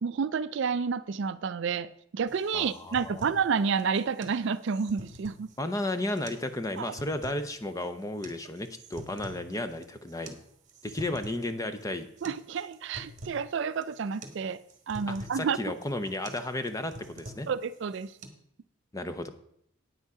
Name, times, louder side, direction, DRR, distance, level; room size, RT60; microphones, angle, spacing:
voice 1, 0.0-5.5 6.8-6.9 12.2-14.6 14.9-15.6 17.5-18.1, right 6 dB, 55° right, 14 dB, 0.4 m, -30 dB
sound 1, 2.3-18.3, right 1 dB, 35° right, 1.2 m, -47 dB
voice 2, 2.5-3.3 5.6-10.4 10.8-12.1 15.1-17.5 18.9-19.3, left 1 dB, 15° left, 9 dB, 0.6 m, -33 dB
9.5 x 8.1 x 4.8 m, 0.72 s
head